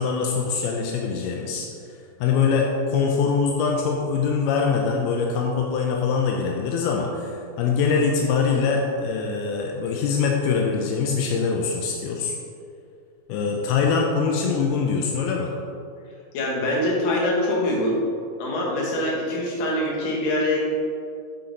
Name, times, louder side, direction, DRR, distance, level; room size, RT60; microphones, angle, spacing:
voice 1, 0.0-1.7 2.2-12.4 13.3-15.5, left 5 dB, 85° left, 0 dB, 2.5 m, -23 dB
voice 2, 16.3-18.0 18.4-20.6, left 1 dB, 65° left, -3 dB, 2.9 m, -24 dB
8.6 x 6.0 x 4.0 m, 2.4 s
omnidirectional pair, 4.4 m